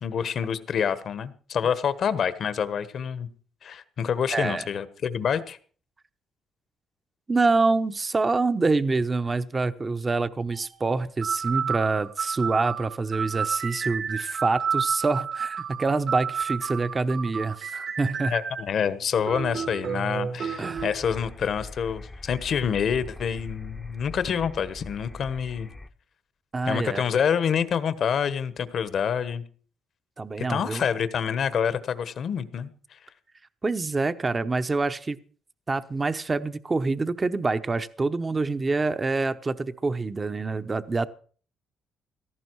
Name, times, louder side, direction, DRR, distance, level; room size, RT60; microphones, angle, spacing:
voice 1, 0.0-3.3 3.6-5.6 18.3-25.7 26.7-29.4 30.4-32.7, left 7 dB, 55° left, 14 dB, 1.2 m, -27 dB
voice 2, 4.3-4.7 7.3-18.3 20.6-20.9 26.5-27.0 30.2-30.8 33.6-35.2 35.7-41.1, right 3 dB, 25° right, 11 dB, 0.9 m, -26 dB
sound 1, 10.5-10.7 11.2-18.7 19.3-20.9, right 7 dB, 55° right, 1.5 m, -31 dB
sound 2, 20.8-25.9, left 2 dB, 15° left, 0.8 m, -42 dB
17.0 x 14.0 x 4.7 m, 0.43 s
cardioid pair, 105°, 0 cm